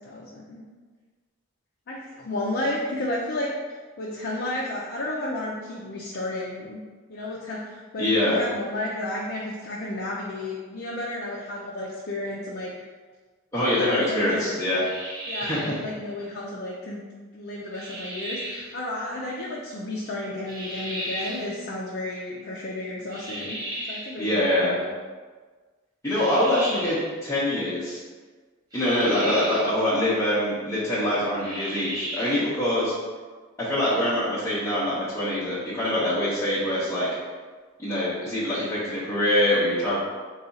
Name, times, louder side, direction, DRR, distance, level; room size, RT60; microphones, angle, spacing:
voice 1, 0.0-0.6 1.9-6.8 7.1-12.9 13.6-14.6 15.3-17.0 17.3-23.6 23.9-24.8 26.3-26.4 29.2-29.6 32.3-32.6, left 1 dB, 50° left, -3 dB, 0.5 m, -32 dB
voice 2, 8.0-8.4 13.5-14.8 15.4-15.6 24.2-24.8 26.0-28.0 28.7-32.9 33.6-37.1 37.8-40.0, left 1 dB, 15° left, -11 dB, 0.7 m, -24 dB
sound 1, 14.8-15.9 17.7-18.7 20.5-21.5 23.1-24.2 26.1-27.1 28.7-29.8 31.4-32.5, right 1 dB, 20° right, 0.7 m, -35 dB
4.0 x 2.3 x 4.0 m, 1.4 s
head